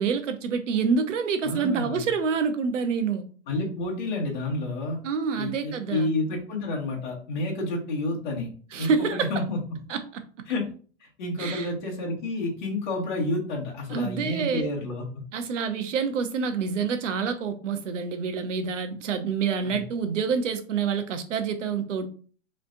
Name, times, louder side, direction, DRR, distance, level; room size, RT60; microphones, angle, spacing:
voice 1, 0.0-3.2 5.0-6.1 8.7-9.3 9.9-10.0 11.4-11.7 13.9-14.7 15.3-22.1, right 5 dB, 85° right, 8 dB, 0.9 m, -27 dB
voice 2, 1.4-2.1 3.5-5.0 5.3-8.5 8.8-9.6 10.5-10.7 11.0-15.2 19.6-19.8, left 2 dB, 40° left, -2 dB, 1.7 m, -30 dB
5.2 x 3.3 x 2.6 m, 0.40 s
hypercardioid pair, 175°, 36 cm